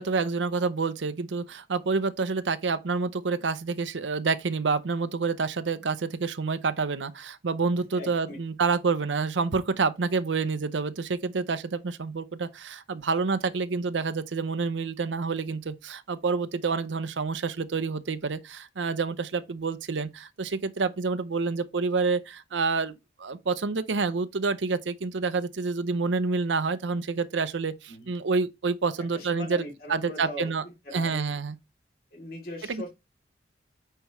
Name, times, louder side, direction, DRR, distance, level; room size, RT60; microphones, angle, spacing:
voice 1, 0.0-30.6 30.9-31.6 32.7-32.9, right 4 dB, 90° right, 0.6 m, -28 dB
voice 2, 7.9-8.4 27.9-28.1 29.1-31.3 32.1-32.9, left 2 dB, 55° left, 2.7 m, -40 dB
9.1 x 4.5 x 3.1 m
head